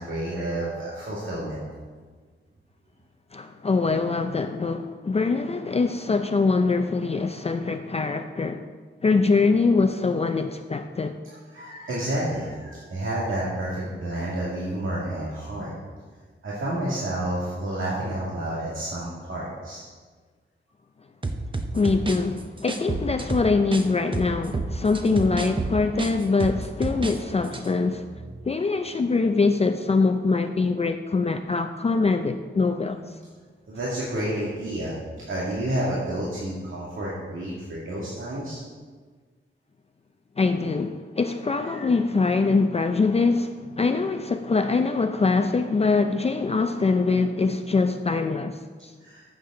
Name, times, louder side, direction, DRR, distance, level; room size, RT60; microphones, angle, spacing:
voice 1, 0.0-1.6 11.2-15.7 16.4-19.8 33.7-35.0 35.3-38.6 41.7-41.8 49.0-49.2, right 1 dB, 80° right, 2.1 m, -30 dB
voice 2, 3.3-8.7 9.0-11.2 21.7-28.1 28.5-33.0 40.4-48.9, left 4 dB, 30° left, 0.4 m, -23 dB
sound 1, 21.2-23.9 24.1-27.2 27.4-27.7, right 3 dB, 25° right, 0.7 m, -29 dB
14.5 x 7.4 x 3.8 m
wide cardioid pair, 140°, 20 cm